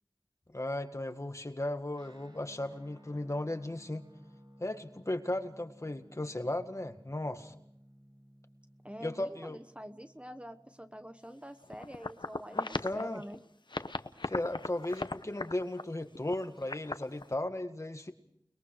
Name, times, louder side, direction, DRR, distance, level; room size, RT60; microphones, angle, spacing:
voice 1, 0.5-4.0 4.6-7.5 9.0-9.6 12.5-13.2 14.2-18.1, left 1 dB, 40° left, 7 dB, 1.9 m, -36 dB
Guitar, 1.9-11.8, equal, 75° right, 7.5 m, -58 dB
voice 2, 8.8-13.4, equal, 15° right, 9 dB, 1.2 m, -46 dB
sound 1, 11.6-13.4 13.7-17.3, left 3 dB, 75° left, 1.0 m, -38 dB
29.5 x 21.5 x 4.9 m, 0.71 s
wide cardioid pair, 55°, 8 cm